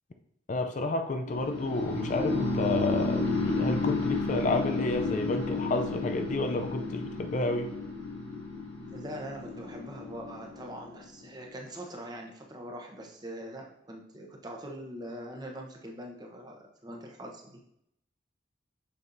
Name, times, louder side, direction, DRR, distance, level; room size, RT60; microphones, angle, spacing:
voice 1, 0.5-7.7, left 2 dB, 40° left, 6 dB, 0.4 m, -30 dB
sound 1, 1.3-11.2, left 3 dB, 75° left, 1.8 m, -32 dB
voice 2, 8.8-17.6, equal, 20° right, 1 dB, 0.9 m, -42 dB
6.7 x 6.2 x 2.6 m, 0.77 s
head